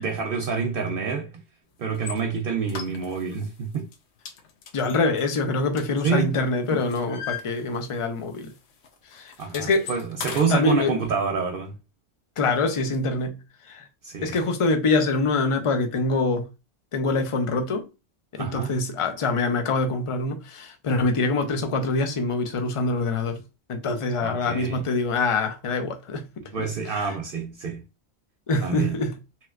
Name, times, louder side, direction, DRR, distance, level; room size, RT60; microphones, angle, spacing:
voice 1, 0.0-1.3 1.8-3.9 6.0-6.4 6.7-6.8 9.4-11.7 14.0-14.4 18.4-18.7 24.2-24.8 26.5-27.8 28.6-29.0, right 5 dB, 65° right, 0.7 m, -27 dB
sound 1, 1.9-2.2 2.7-3.4 3.7-4.0 4.3-6.3 6.6-8.1 8.4-8.6 8.8-10.6, left 7 dB, 80° left, 0.9 m, -38 dB
voice 2, 4.7-8.5 9.1-9.9 10.5-11.0 12.4-13.4 13.7-13.8 14.2-16.5 16.9-17.9 18.3-23.4 23.7-26.3 26.6-26.7 26.9-27.1 28.5-29.1, left 3 dB, 40° left, 0.5 m, -25 dB
3.0 x 3.0 x 2.3 m
omnidirectional pair, 1.1 m